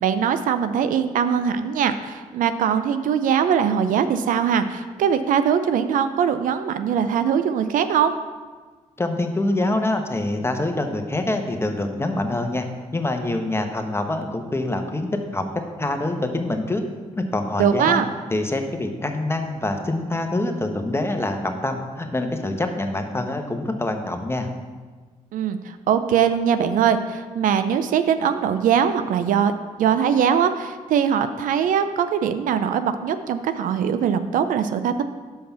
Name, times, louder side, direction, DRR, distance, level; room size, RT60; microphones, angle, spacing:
voice 1, 0.0-8.1 17.6-18.1 25.3-29.5 29.8-35.0, right 8 dB, 75° right, 10 dB, 0.5 m, -21 dB
voice 2, 9.0-12.7 12.9-16.8 17.1-18.0 18.3-24.5, left 2 dB, 20° left, 5 dB, 1.1 m, -25 dB
5.8 x 5.2 x 6.8 m, 1.4 s
supercardioid pair, 60°, 14 cm